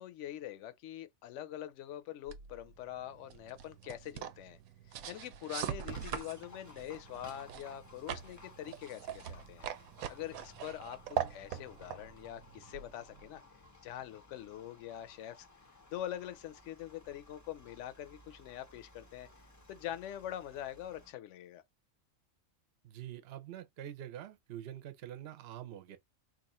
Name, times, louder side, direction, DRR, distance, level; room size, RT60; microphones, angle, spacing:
voice 1, 0.0-4.6 5.1-9.7 10.1-13.4 13.8-15.5 15.9-19.3 19.7-21.6, left 12 dB, 70° left, 0.8 m, -44 dB
sound 1, 2.3-13.4, right 10 dB, 85° right, 1.0 m, -43 dB
Livestock farm animals working animals, 5.8-21.1, left 3 dB, 25° left, 0.3 m, -58 dB
voice 2, 22.8-26.0, right 11 dB, 55° right, 0.8 m, -45 dB
2.9 x 2.4 x 4.1 m
omnidirectional pair, 1.4 m